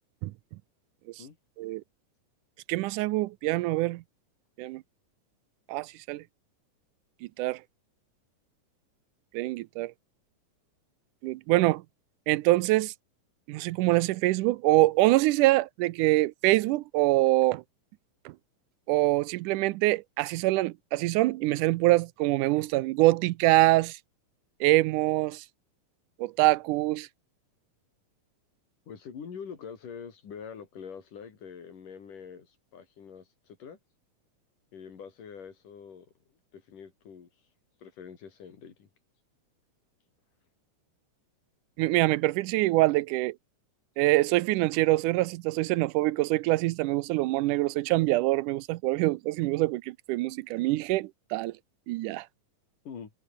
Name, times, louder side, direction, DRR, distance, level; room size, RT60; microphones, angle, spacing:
voice 1, 2.7-4.0 4.6-4.8 5.7-6.2 7.4-7.6 9.3-9.9 11.2-11.8 12.3-12.9 13.5-17.6 18.3-18.4 18.9-24.0 24.6-25.4 26.2-27.1 41.8-43.4 44.0-51.5 51.9-52.3, right 18 dB, 80° right, 2.2 m, -25 dB
voice 2, 28.9-33.8 34.7-36.1 36.5-37.3 37.8-38.9 52.8-53.1, left 7 dB, 85° left, 5.0 m, -45 dB
omnidirectional pair, 3.6 m